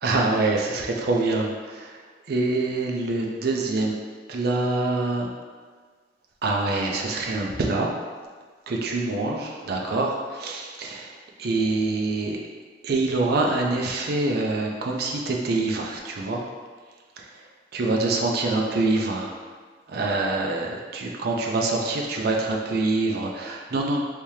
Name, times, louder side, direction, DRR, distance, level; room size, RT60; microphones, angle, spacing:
voice 1, 0.0-2.0 2.3-3.9 4.3-5.3 6.4-7.9 8.7-12.4 12.8-16.4 17.2-17.4 17.7-19.3 19.9-24.0, right 2 dB, 60° right, 0 dB, 0.4 m, -25 dB
3.4 x 2.7 x 3.1 m, 1.5 s
head